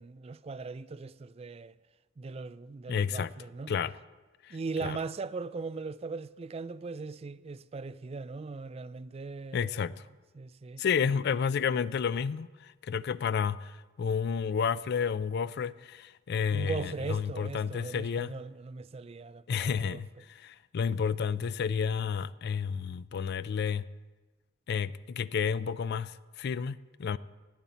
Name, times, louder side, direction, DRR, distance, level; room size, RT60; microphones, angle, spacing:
voice 1, 0.0-1.7 2.2-3.7 4.5-9.8 10.3-10.8 16.5-20.0, right 4 dB, 30° right, 0.3 m, -39 dB
voice 2, 2.9-3.3 3.7-3.9 4.4-5.0 9.5-9.9 10.8-18.3 19.5-23.9 24.7-27.2, left 6 dB, 50° left, 0.3 m, -31 dB
17.5 x 8.7 x 4.1 m
head